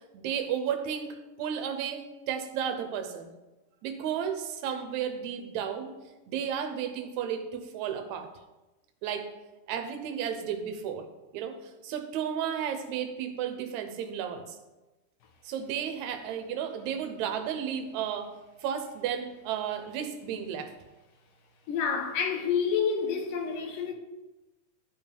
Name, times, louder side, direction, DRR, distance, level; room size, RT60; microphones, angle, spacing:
voice 1, 0.1-3.3 3.8-5.9 6.3-8.3 9.0-9.3 9.7-11.0 11.3-11.5 11.8-14.4 15.4-18.3 18.6-20.7, right 8 dB, 70° right, 1.9 m, -33 dB
voice 2, 21.7-23.9, left 6 dB, 80° left, 2.5 m, -28 dB
12.5 x 5.8 x 3.4 m
omnidirectional pair, 3.8 m